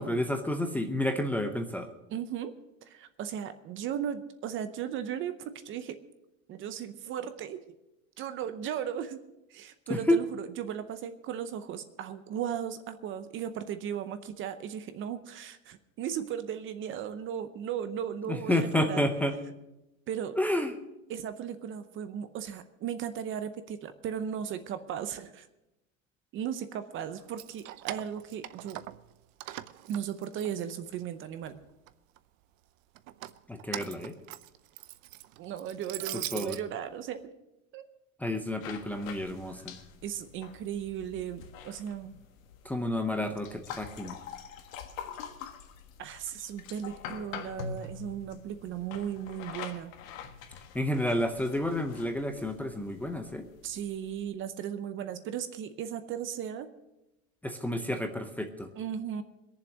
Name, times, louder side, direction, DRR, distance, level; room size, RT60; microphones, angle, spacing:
voice 1, 0.0-1.9 9.9-10.2 18.3-19.3 20.4-20.7 33.5-34.1 36.3-36.6 38.2-39.7 42.6-44.2 50.7-53.4 57.4-58.7, left 1 dB, 5° left, 4 dB, 0.7 m, -30 dB
voice 2, 2.1-2.6 2.8-6.0 6.5-7.6 8.2-9.2 9.5-19.1 20.1-20.4 21.1-25.5 26.3-28.8 29.9-31.6 35.4-37.2 37.7-37.8 40.0-42.2 46.0-49.9 53.6-56.7 58.8-59.2, right 9 dB, 30° right, 11 dB, 0.7 m, -36 dB
Keys jangling, 27.2-29.1 29.4-31.0 31.4-32.2 33.0-36.6, right 15 dB, 80° right, 0.8 m, -41 dB
sound 1, 38.6-54.3, left 6 dB, 90° left, 1.6 m, -45 dB
21.5 x 7.3 x 6.2 m, 0.94 s
supercardioid pair, 145°, 39 cm